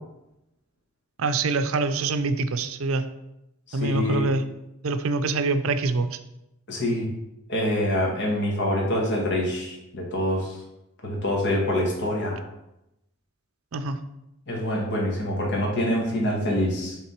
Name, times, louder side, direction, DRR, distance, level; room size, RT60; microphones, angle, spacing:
voice 1, 1.2-3.0 3.7-4.4 4.8-6.1 13.7-14.0, right 3 dB, 70° right, 10 dB, 0.5 m, -25 dB
voice 2, 3.7-4.3 6.7-7.1 7.5-10.6 11.0-12.4 14.5-17.0, left 1 dB, 55° left, -1 dB, 1.5 m, -25 dB
7.2 x 3.6 x 4.4 m, 0.88 s
head